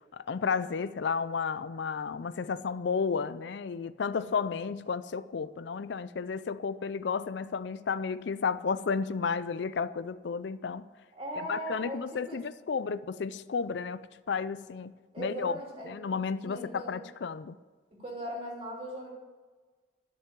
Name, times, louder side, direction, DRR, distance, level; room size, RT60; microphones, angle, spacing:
voice 1, 0.0-10.9 11.3-15.6 15.9-17.6, left 5 dB, 65° left, 14 dB, 0.4 m, -32 dB
voice 2, 11.1-12.0 12.3-12.4 15.1-15.9 16.4-17.0 17.9-19.1, equal, 30° right, -2 dB, 3.2 m, -38 dB
12.0 x 6.8 x 9.0 m, 1.4 s
head